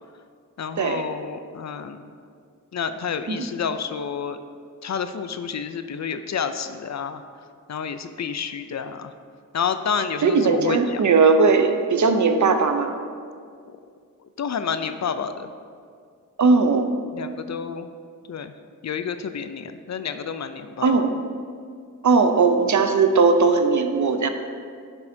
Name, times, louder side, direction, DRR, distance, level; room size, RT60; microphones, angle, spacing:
voice 1, 0.6-2.1 2.7-4.4 4.8-7.2 7.7-9.1 9.5-11.0 14.4-15.5 17.1-17.9 18.3-18.5 18.8-20.9, left 6 dB, 55° left, 10 dB, 0.4 m, -29 dB
voice 2, 10.2-13.0 16.4-16.9 20.8-21.1 22.0-24.3, right 4 dB, 60° right, 7 dB, 0.6 m, -18 dB
10.5 x 5.4 x 2.7 m, 2.2 s
cardioid pair, 70°, 34 cm